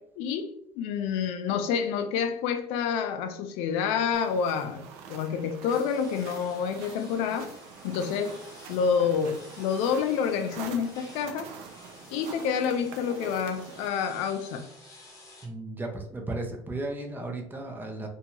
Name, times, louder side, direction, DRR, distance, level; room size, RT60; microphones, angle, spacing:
voice 1, 0.0-4.8 5.1-7.5 7.8-8.4 8.7-11.5 12.1-14.7, left 7 dB, 80° left, 0.4 m, -28 dB
sound 1, 4.1-13.9, right 6 dB, 80° right, 0.5 m, -45 dB
sound 2, 5.7-15.5, left 2 dB, 30° left, 0.8 m, -51 dB
voice 2, 15.4-18.1, right 2 dB, 20° right, 0.6 m, -35 dB
2.6 x 2.2 x 2.9 m
cardioid pair, 110°, 11 cm